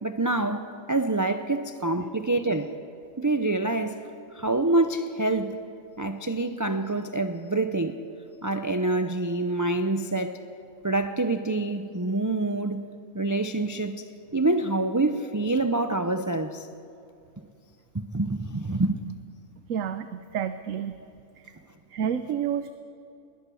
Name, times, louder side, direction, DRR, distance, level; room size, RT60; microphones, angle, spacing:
voice 1, 0.0-2.7 3.2-4.0 4.3-5.6 6.0-7.9 8.4-10.3 10.8-12.8 13.1-14.0 14.3-16.7 17.9-19.0, right 2 dB, 20° right, 0.4 m, -26 dB
voice 2, 19.7-21.0 21.9-22.7, right 8 dB, 70° right, 1.1 m, -29 dB
21.0 x 20.0 x 7.0 m
omnidirectional pair, 1.4 m